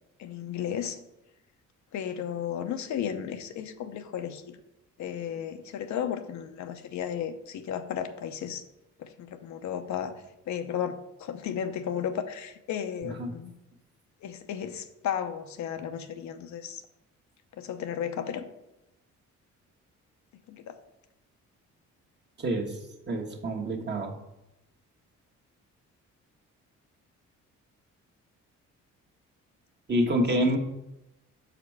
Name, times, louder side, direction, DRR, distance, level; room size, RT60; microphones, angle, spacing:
voice 1, 0.2-1.0 1.9-4.6 5.0-8.6 9.0-10.1 10.5-13.5 14.2-16.8 17.6-18.5 20.5-20.8 30.4-30.6, left 9 dB, 70° left, 8 dB, 0.7 m, -34 dB
voice 2, 13.0-13.3 22.4-22.8 23.1-24.1 29.9-30.6, right 1 dB, 35° right, 1 dB, 1.4 m, -27 dB
6.1 x 5.0 x 4.7 m, 0.90 s
cardioid pair, 90°, 30 cm